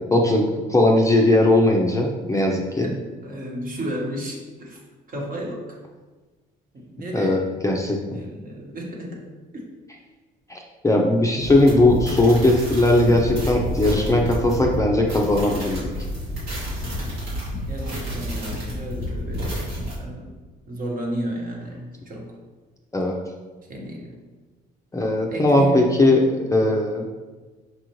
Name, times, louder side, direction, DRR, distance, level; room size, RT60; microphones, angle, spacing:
voice 1, 0.1-2.9 7.1-8.0 10.5-10.6 10.8-15.8 22.9-23.2 24.9-27.1, left 1 dB, 15° left, 0 dB, 0.5 m, -19 dB
voice 2, 2.8-4.8 5.1-5.8 6.7-7.5 8.1-9.2 9.5-9.6 17.7-20.4 20.7-22.4 23.7-24.2 25.3-26.0, right 1 dB, 45° right, -1 dB, 1.2 m, -33 dB
sound 1, 11.4-19.9, equal, 85° right, 1.5 m, -29 dB
5.4 x 2.4 x 3.0 m, 1.3 s
supercardioid pair, 70°, 20 cm